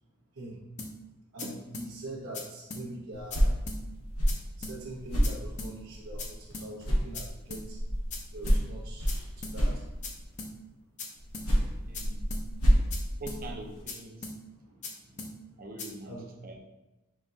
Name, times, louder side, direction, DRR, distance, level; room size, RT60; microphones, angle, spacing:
sound 1, 0.8-0.9 1.4-1.5 1.7-1.9 2.3-2.4 2.7-2.8 3.3-3.4 3.7-3.8 4.3-4.4 4.6-4.8 5.2-5.3 5.6-5.7 6.2-6.3 6.5-6.7 7.1-7.2 7.5-7.6 8.1-8.2 8.5-8.6 9.1-9.2 9.4-9.6 10.0-10.1 10.4-10.5 11.0-11.1 11.3-11.5 11.9-12.0 12.3-12.4 12.9-13.0 13.3-13.4 13.9-14.0 14.2-14.4 14.8-14.9 15.2-15.3 15.8-15.9, left 3 dB, 35° left, 0.6 m, -39 dB
voice 1, 1.3-3.6 4.6-7.8 8.3-9.8 14.5-15.3 16.0-16.2, right 1 dB, 85° right, -7 dB, 1.0 m, -43 dB
sound 2, 3.1-6.5 6.8-10.3 11.2-13.8, equal, 80° left, 1.3 m, -29 dB
voice 2, 11.7-12.2 13.2-14.3 15.6-16.2 16.4-16.6, right 1 dB, 40° right, 2 dB, 0.6 m, -43 dB
5.2 x 2.4 x 3.9 m, 1.0 s
head